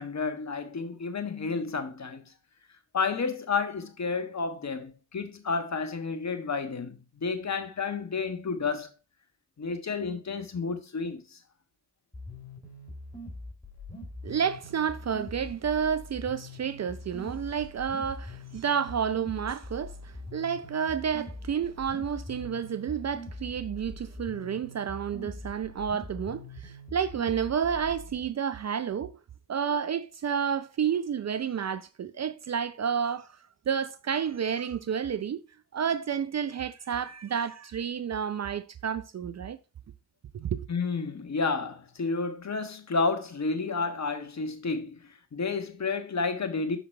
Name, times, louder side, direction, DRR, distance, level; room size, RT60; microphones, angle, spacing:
voice 1, 0.0-2.3 2.9-8.9 9.6-11.4 40.7-46.8, left 4 dB, 40° left, 1.3 m, -31 dB
sound 1, 12.1-28.1, left 2 dB, 10° left, 3.1 m, -43 dB
voice 2, 14.2-29.2 29.5-33.3 33.7-35.4 35.7-39.6 40.3-40.7, right 7 dB, 40° right, 0.5 m, -30 dB
6.0 x 4.1 x 4.3 m
hypercardioid pair, 40°, 44 cm